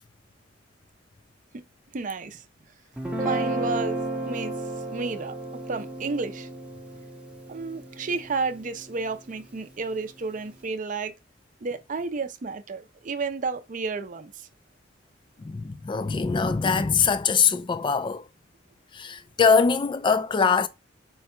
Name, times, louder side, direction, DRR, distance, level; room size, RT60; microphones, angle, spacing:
voice 1, 1.9-2.4 3.2-4.5 4.9-6.5 7.5-11.1 11.6-14.5, right 4 dB, 45° right, 0.5 m, -32 dB
Guitar, 3.0-9.3, right 2 dB, 5° right, 0.7 m, -33 dB
voice 2, 15.4-18.2 18.9-20.7, left 5 dB, 25° left, 0.3 m, -22 dB
4.6 x 2.2 x 4.3 m
head